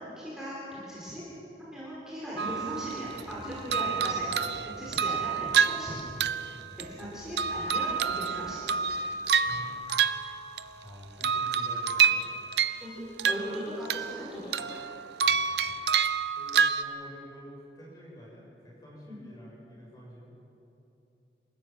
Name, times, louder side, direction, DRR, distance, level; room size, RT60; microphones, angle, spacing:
voice 1, 0.2-0.6 0.9-1.2 1.6-4.3 4.6-5.9 6.9-8.6 12.8-14.3 14.5-14.9, equal, 5° right, -8 dB, 5.2 m, -38 dB
sound 1, 2.4-15.6, equal, 45° left, 4.6 m, -53 dB
sound 2, 2.4-3.3 3.7-7.0 7.4-10.8 11.2-12.9 13.2-14.2 14.5-16.8, right 6 dB, 75° right, 0.7 m, -28 dB
voice 2, 10.8-12.3 15.2-15.8 16.3-20.4, equal, 20° left, -5 dB, 6.9 m, -48 dB
28.0 x 14.5 x 7.5 m, 2.9 s
head